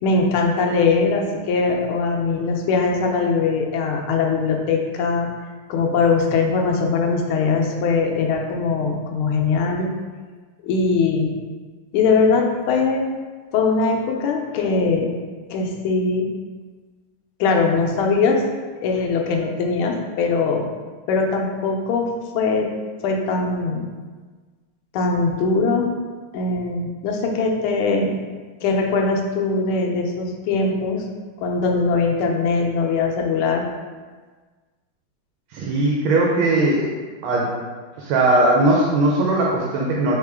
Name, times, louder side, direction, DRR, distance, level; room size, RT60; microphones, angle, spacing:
voice 1, 0.0-5.3 5.7-9.9 10.6-11.4 11.9-13.1 13.5-15.1 15.5-16.3 17.4-18.4 18.8-20.7 21.1-22.7 23.0-23.9 24.9-25.9 26.3-28.2 28.6-31.0 31.4-33.6, left 4 dB, 90° left, 1 dB, 1.5 m, -21 dB
voice 2, 35.5-36.9 37.2-37.6 38.0-40.2, right 2 dB, 80° right, -2 dB, 1.4 m, -19 dB
3.7 x 3.6 x 3.3 m, 1.4 s
omnidirectional pair, 2.3 m